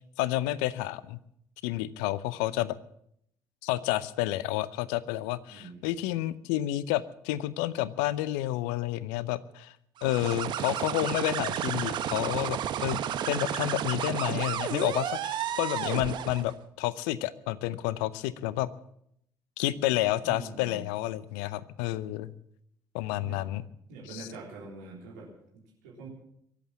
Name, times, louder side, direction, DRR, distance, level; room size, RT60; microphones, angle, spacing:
voice 1, 0.2-1.2 1.6-2.8 3.6-9.7 10.0-18.7 19.6-22.3 22.9-23.6 24.1-24.3, left 15 dB, 75° left, 18 dB, 0.7 m, -30 dB
voice 2, 5.5-6.0 20.2-20.9 23.2-23.5 23.9-26.1, right 3 dB, 80° right, -2 dB, 3.7 m, -45 dB
sound 1, 10.0-16.5, right 10 dB, 60° right, 1.0 m, -32 dB
23.0 x 8.4 x 7.3 m, 0.72 s
hypercardioid pair, 50°, 9 cm